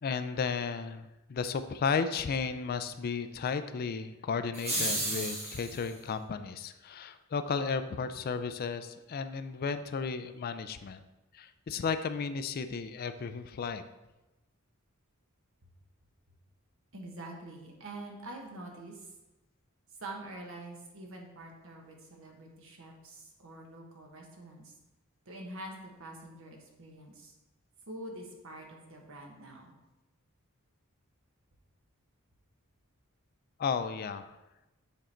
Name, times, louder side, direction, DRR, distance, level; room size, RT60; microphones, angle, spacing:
voice 1, 0.0-11.0 11.3-13.8 33.6-34.4, left 5 dB, 45° left, 10 dB, 0.4 m, -34 dB
sound 1, 4.5-5.9, right 1 dB, 30° right, 1.7 m, -33 dB
voice 2, 16.9-19.1 20.0-24.7 25.3-25.7 26.0-27.3 27.9-29.8, right 1 dB, 65° right, 1 dB, 1.3 m, -46 dB
7.2 x 3.8 x 4.3 m, 1.0 s
head